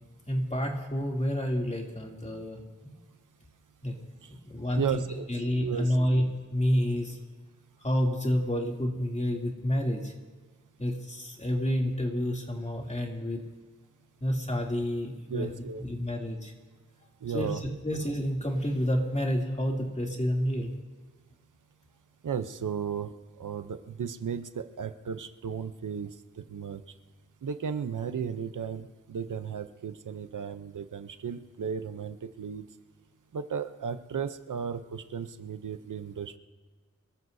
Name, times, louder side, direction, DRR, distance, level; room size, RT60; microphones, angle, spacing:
voice 1, 0.3-2.6 3.8-4.0 4.3-5.0 5.3-6.3 6.5-7.2 7.8-10.1 10.8-13.4 14.2-15.5 15.8-16.5 17.3-17.5 17.8-20.7, equal, 25° left, -1 dB, 2.8 m, -29 dB
voice 2, 4.8-5.3 5.5-6.0 15.3-15.8 17.2-17.6 22.2-23.1 23.4-26.1 26.5-26.8 27.4-32.6 33.3-36.4, right 7 dB, 90° right, 10 dB, 0.8 m, -34 dB
26.5 x 14.0 x 2.7 m, 1.4 s
wide cardioid pair, 55°, 30 cm